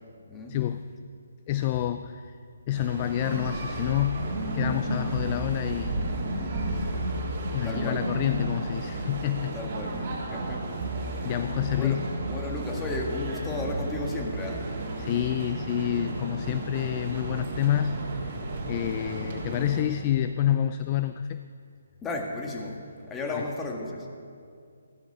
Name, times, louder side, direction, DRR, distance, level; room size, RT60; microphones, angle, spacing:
voice 1, 0.5-0.9 1.5-2.4 2.7-6.0 7.5-9.6 11.2-12.0 15.0-18.4 18.7-21.5 23.3-23.5, left 11 dB, 30° left, 11 dB, 0.4 m, -28 dB
sound 1, 2.7-19.8, right 2 dB, 40° right, 3.4 m, -33 dB
voice 2, 7.6-8.0 9.5-10.0 10.3-10.8 11.1-11.3 11.7-12.0 12.3-14.7 22.0-22.8 23.1-24.1, left 2 dB, 15° left, 1 dB, 1.7 m, -34 dB
15.0 x 13.0 x 5.6 m, 2.4 s
hypercardioid pair, 150°, 0 cm